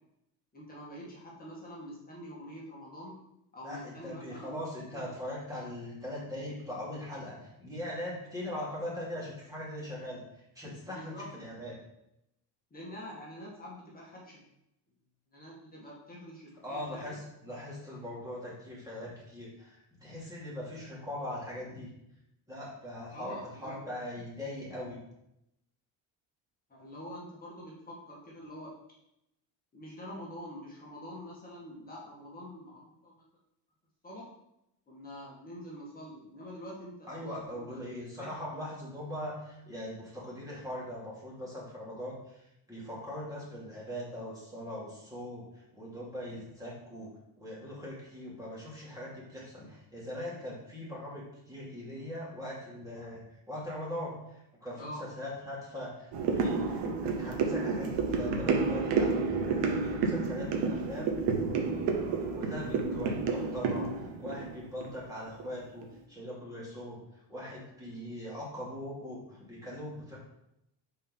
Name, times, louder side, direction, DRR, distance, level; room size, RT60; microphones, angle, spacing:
voice 1, 0.5-3.2 3.5-4.6 4.9-5.0 10.9-11.4 12.7-14.4 15.3-17.2 23.1-23.8 26.7-28.8 29.7-33.2 34.0-34.3 34.9-37.8 38.2-38.3 54.8-55.1, equal, 20° left, -5 dB, 1.9 m, -45 dB
voice 2, 3.6-10.2 10.5-11.8 16.6-21.9 22.5-25.0 37.1-47.1 47.4-53.2 53.5-61.1 62.3-63.9 64.2-67.0 67.3-70.2, left 1 dB, 10° right, -6 dB, 2.7 m, -41 dB
sound 1, 56.1-65.5 65.8-65.9, right 4 dB, 80° right, 1.1 m, -30 dB
5.3 x 4.5 x 5.5 m, 0.83 s
cardioid pair, 140°, 42 cm